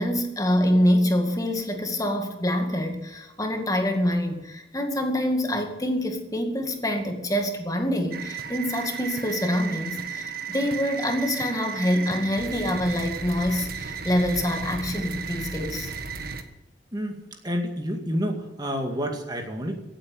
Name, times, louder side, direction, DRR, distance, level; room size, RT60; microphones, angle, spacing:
voice 1, 0.0-15.9, left 1 dB, 20° left, 5 dB, 2.1 m, -25 dB
sound 1, 8.1-16.4, right 6 dB, 50° right, 1.4 m, -34 dB
voice 2, 16.9-19.7, equal, 20° right, 3 dB, 2.2 m, -29 dB
16.0 x 8.8 x 9.0 m, 1.0 s
head